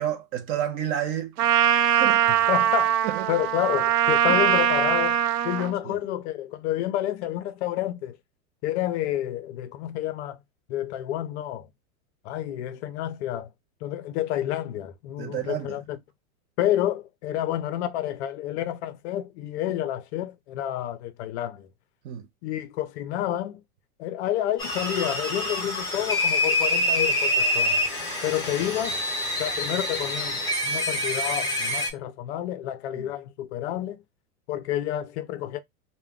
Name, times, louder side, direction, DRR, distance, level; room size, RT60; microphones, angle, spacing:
voice 1, 0.0-2.2 3.0-3.3 4.3-4.4 5.9-6.0 15.2-15.8 22.0-22.3 33.0-33.1, right 10 dB, 30° right, 0.4 m, -31 dB
Trumpet, 1.4-5.7, right 10 dB, 80° right, 0.5 m, -22 dB
voice 2, 2.5-3.0 3.3-5.2 5.4-8.2 8.6-10.4 10.7-11.7 12.2-13.5 13.8-16.0 16.6-21.7 22.4-23.6 24.0-27.8 28.2-29.0 29.4-34.0 34.5-35.6, left 12 dB, 50° left, 0.5 m, -29 dB
sound 1, 24.6-31.9, left 1 dB, 10° left, 0.8 m, -26 dB
2.2 x 2.1 x 3.5 m
hypercardioid pair, 120°, 44 cm